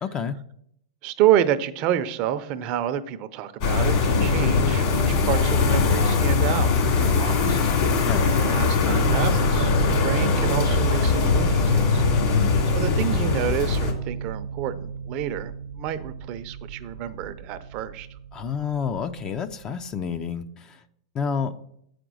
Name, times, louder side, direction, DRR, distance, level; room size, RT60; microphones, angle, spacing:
voice 1, 0.0-0.4 8.0-8.3 12.2-12.6 18.3-20.8 21.1-21.6, left 6 dB, 30° left, 11 dB, 0.6 m, -29 dB
voice 2, 1.0-7.6 8.2-12.0 12.7-18.1, right 10 dB, 45° right, 12 dB, 0.6 m, -28 dB
sound 1, 3.6-13.9, left 5 dB, 50° left, 2.5 m, -21 dB
sound 2, 9.0-20.4, right 6 dB, 80° right, 0.9 m, -31 dB
7.7 x 5.1 x 6.2 m, 0.71 s
hypercardioid pair, 120°, 3 cm